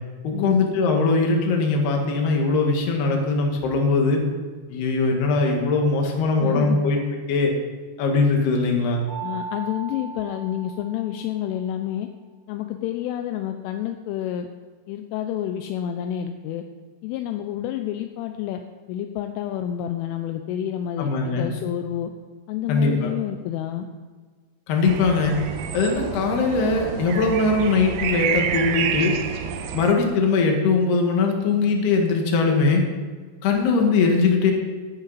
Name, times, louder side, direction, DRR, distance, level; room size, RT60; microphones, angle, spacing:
voice 1, 0.2-4.2 4.7-7.0 7.3-7.5 8.0-9.0 21.0-21.5 22.7-23.1 24.7-25.4 25.7-29.1 29.7-32.8 33.4-34.5, left 4 dB, 60° left, 1 dB, 3.4 m, -21 dB
voice 2, 6.4-6.9 9.2-12.1 12.5-14.5 14.9-16.6 17.0-18.6 18.9-22.1 22.5-23.9, left 11 dB, 85° left, 6 dB, 3.1 m, -29 dB
Mallet percussion, 9.1-11.6, right 4 dB, 25° left, 1.2 m, -37 dB
sound 1, 24.8-29.9, right 8 dB, 85° right, 2.2 m, -28 dB
17.5 x 9.3 x 4.1 m, 1.5 s
omnidirectional pair, 5.7 m